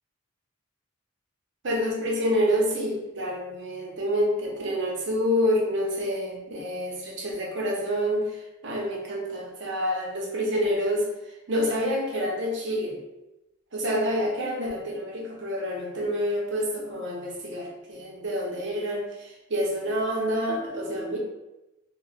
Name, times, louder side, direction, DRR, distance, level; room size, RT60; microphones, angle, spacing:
voice 1, 1.6-13.0 13.7-21.2, equal, 55° right, -1 dB, 0.7 m, -28 dB
2.7 x 2.1 x 3.3 m, 0.96 s
head